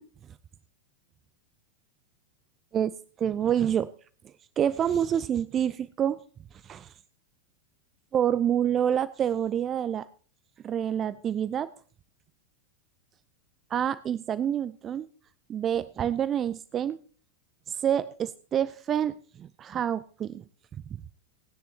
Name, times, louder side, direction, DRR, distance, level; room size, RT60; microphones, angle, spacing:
voice 1, 2.7-3.9 4.6-6.2 6.6-6.9 8.1-10.1 10.6-11.7 13.7-15.1 15.5-17.0 17.7-20.4, right 9 dB, 25° right, 16 dB, 0.5 m, -27 dB
19.0 x 10.0 x 2.8 m, 0.40 s
figure-of-eight pair, 90°, 0 cm